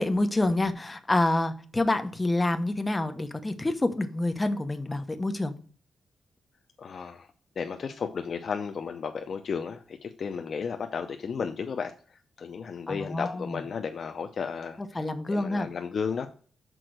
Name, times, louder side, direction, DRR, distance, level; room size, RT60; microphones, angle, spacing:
voice 1, 0.0-5.5 12.9-13.6 14.9-15.7, left 2 dB, 20° left, 8 dB, 0.9 m, -27 dB
voice 2, 6.8-7.3 7.6-16.3, left 6 dB, 55° left, 6 dB, 0.6 m, -34 dB
6.2 x 4.4 x 6.4 m, 0.42 s
cardioid pair, 110°, 0 cm